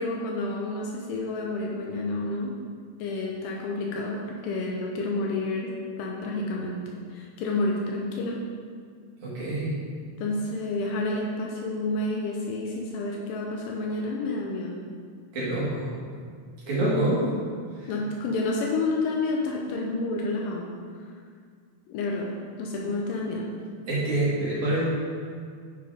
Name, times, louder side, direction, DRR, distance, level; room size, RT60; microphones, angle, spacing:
voice 1, 0.0-2.5 3.0-5.7 6.0-6.8 7.1-8.4 10.2-14.8 17.9-20.7 21.9-22.3 22.6-23.5, left 2 dB, 85° left, -1 dB, 2.5 m, -29 dB
voice 2, 9.2-9.7 15.3-15.9 16.7-17.3 17.8-17.9 22.7-22.8 23.9-24.9, right 1 dB, 60° right, -8 dB, 3.5 m, -26 dB
9.0 x 5.0 x 5.0 m, 2.1 s
omnidirectional pair, 3.8 m